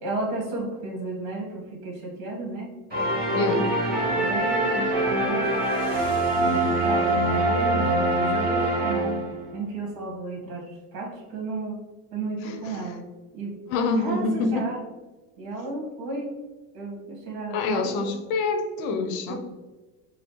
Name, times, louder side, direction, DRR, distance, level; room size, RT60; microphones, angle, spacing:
voice 1, 0.0-2.7 3.3-3.7 4.1-5.5 6.4-11.8 12.1-13.0 13.3-13.5 14.0-14.8 15.4-16.3 16.7-18.1 19.3-19.4, right 2 dB, 60° right, 0 dB, 1.4 m, -33 dB
sound 1, 2.9-9.5, right 2 dB, 20° right, 1.3 m, -24 dB
voice 2, 3.3-3.7 12.4-12.9 13.7-14.7 17.5-19.4, left 3 dB, 80° left, 7 dB, 0.7 m, -26 dB
5.5 x 2.0 x 3.1 m, 1.2 s
supercardioid pair, 120°, 42 cm